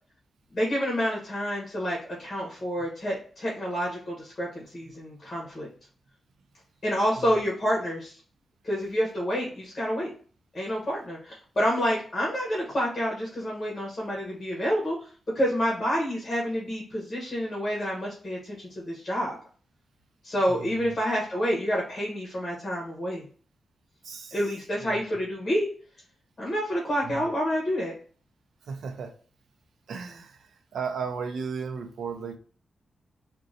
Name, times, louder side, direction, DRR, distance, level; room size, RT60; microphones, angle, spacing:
voice 1, 0.5-5.7 6.8-8.1 8.6-10.1 10.5-15.0 15.3-19.4 20.2-23.2 24.3-25.7 26.4-27.9, equal, 25° left, -3 dB, 1.0 m, -28 dB
voice 2, 20.5-21.0 24.0-24.4 24.8-25.0 27.0-27.3 28.6-29.1 29.9-32.4, right 5 dB, 80° right, 6 dB, 0.5 m, -35 dB
3.6 x 2.2 x 2.6 m, 0.43 s
wide cardioid pair, 170°, 0 cm